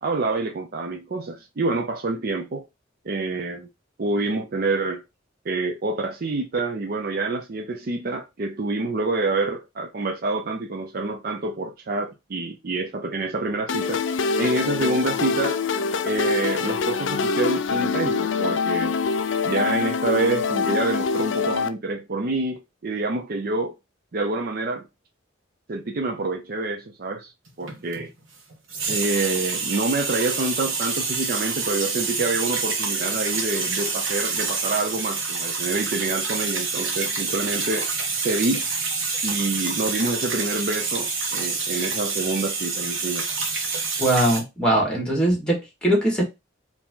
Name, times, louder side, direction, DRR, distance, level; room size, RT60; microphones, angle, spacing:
voice 1, 0.0-2.7 3.0-3.7 4.0-5.0 5.5-14.0 14.4-15.6 16.0-19.0 19.4-23.8 24.1-24.9 25.7-27.3 27.6-28.1 28.9-37.9 38.2-38.7 39.2-43.3, right 3 dB, 50° right, 0.5 m, -27 dB
sound 1, 13.7-21.7, left 5 dB, 70° left, 0.5 m, -24 dB
sound 2, 27.5-28.2 28.5-44.4, right 4 dB, 80° right, 1.2 m, -27 dB
voice 2, 44.0-46.2, right 1 dB, 5° left, 1.8 m, -21 dB
4.6 x 2.8 x 3.7 m
head